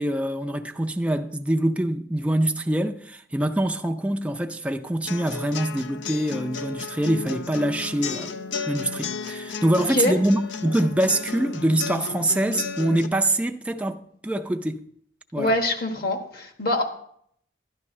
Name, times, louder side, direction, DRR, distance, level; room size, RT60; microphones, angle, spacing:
voice 1, 0.0-8.3 8.7-14.8 15.3-15.6, right 1 dB, 5° right, 0.4 m, -24 dB
sound 1, 5.1-13.1, left 5 dB, 80° left, 0.6 m, -34 dB
voice 2, 15.4-16.8, left 1 dB, 55° left, 1.5 m, -24 dB
12.5 x 11.0 x 3.2 m
head